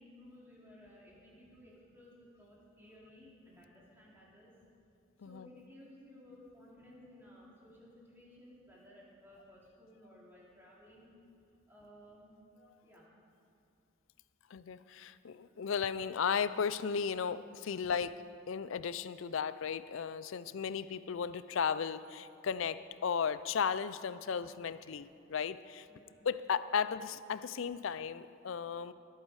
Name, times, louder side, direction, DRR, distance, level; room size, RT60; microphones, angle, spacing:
voice 1, 0.0-4.5 5.2-11.1 11.7-12.3 12.8-13.0 15.3-15.5 25.9-26.2, left 1 dB, 10° right, -6 dB, 2.6 m, -57 dB
voice 2, 14.5-18.2 18.5-25.9 26.2-28.9, left 6 dB, 65° left, 15 dB, 0.4 m, -35 dB
21.0 x 8.5 x 4.8 m, 2.5 s
head